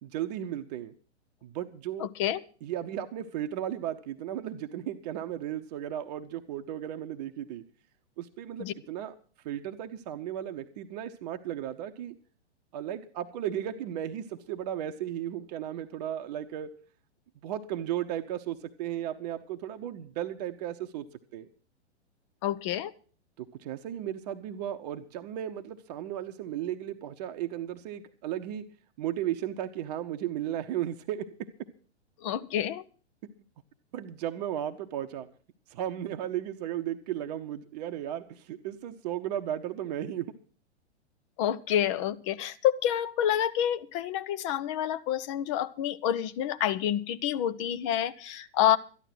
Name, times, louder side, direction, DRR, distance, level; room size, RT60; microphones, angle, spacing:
voice 1, 0.0-0.9 1.4-2.1 2.6-7.6 8.2-9.1 9.4-12.2 12.7-16.7 17.4-21.1 21.3-21.5 23.4-28.6 29.0-31.5 33.9-35.3 35.7-40.3, right 11 dB, 35° right, 7 dB, 0.8 m, -35 dB
voice 2, 2.0-2.4 8.6-8.7 22.4-22.9 32.2-32.8 41.4-48.8, left 10 dB, 30° left, 13 dB, 0.5 m, -28 dB
13.0 x 11.0 x 6.0 m, 0.41 s
figure-of-eight pair, 110°, 34 cm